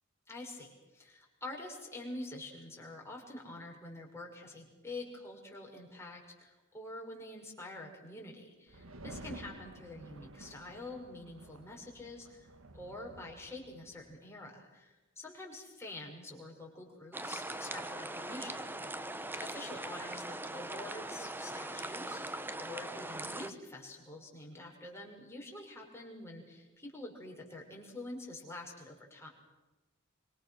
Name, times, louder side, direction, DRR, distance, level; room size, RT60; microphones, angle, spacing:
voice 1, 0.3-18.7 19.4-22.2 22.6-29.3, left 2 dB, 10° left, -1 dB, 6.0 m, -47 dB
sound 1, 8.7-14.1, right 2 dB, 70° right, 1.6 m, -51 dB
sound 2, 17.1-23.5, right 2 dB, 10° right, 0.9 m, -41 dB
25.5 x 25.5 x 6.4 m, 1.1 s
head